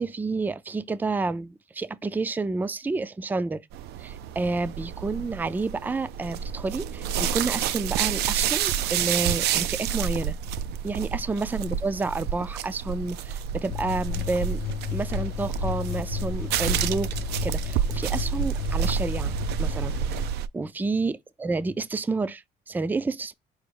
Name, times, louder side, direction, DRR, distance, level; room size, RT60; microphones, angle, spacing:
voice 1, 0.0-3.6 4.0-10.4 10.8-14.6 14.9-20.0 20.5-23.3, right 3 dB, 10° right, 0.3 m, -30 dB
sound 1, 3.7-20.5, right 8 dB, 80° right, 0.4 m, -29 dB
sound 2, 13.7-20.3, left 8 dB, 65° left, 0.6 m, -33 dB
5.1 x 2.0 x 4.6 m
cardioid pair, 110°, 17 cm